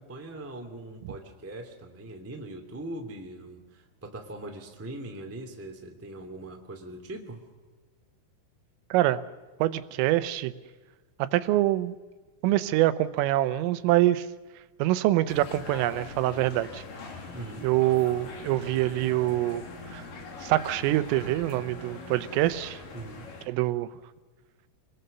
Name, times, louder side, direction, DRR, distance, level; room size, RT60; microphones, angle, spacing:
voice 1, 0.0-7.4 17.3-17.7 22.9-23.2, right 1 dB, 5° right, 2 dB, 1.0 m, -41 dB
voice 2, 8.9-9.2 9.6-10.5 11.2-12.0 12.4-14.3 14.8-16.8 17.6-20.0 20.4-22.8 23.5-23.9, right 15 dB, 85° right, 13 dB, 3.5 m, -25 dB
sound 1, 15.3-23.5, left 3 dB, 50° left, 3.8 m, -42 dB
27.5 x 21.0 x 6.8 m, 1.3 s
omnidirectional pair, 5.8 m